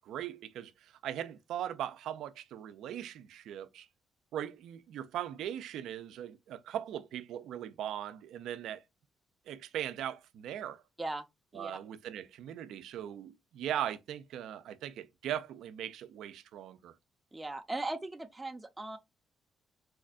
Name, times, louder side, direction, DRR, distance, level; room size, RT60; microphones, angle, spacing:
voice 1, 0.0-3.9 4.3-8.8 9.5-10.8 11.5-16.9, right 10 dB, 80° right, 0.4 m, -39 dB
voice 2, 17.3-19.0, right 2 dB, 15° right, 0.5 m, -38 dB
4.2 x 2.2 x 2.4 m
cardioid pair, 90°, 0 cm